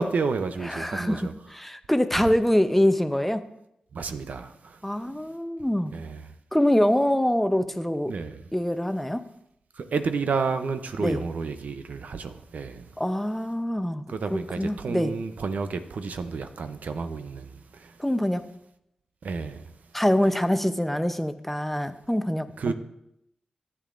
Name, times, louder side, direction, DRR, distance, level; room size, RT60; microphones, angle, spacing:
voice 1, 0.0-1.3 3.9-4.8 5.9-6.2 8.1-8.4 9.8-12.8 14.1-17.9 19.2-19.6 22.6-22.7, right 4 dB, 75° right, 0.6 m, -30 dB
voice 2, 0.6-3.5 4.8-5.9 6.5-8.1 8.5-9.3 11.0-11.2 13.0-14.0 14.3-15.1 18.0-18.5 19.9-22.7, left 1 dB, 5° left, 0.6 m, -24 dB
12.5 x 8.4 x 2.5 m
cardioid pair, 50°, 3 cm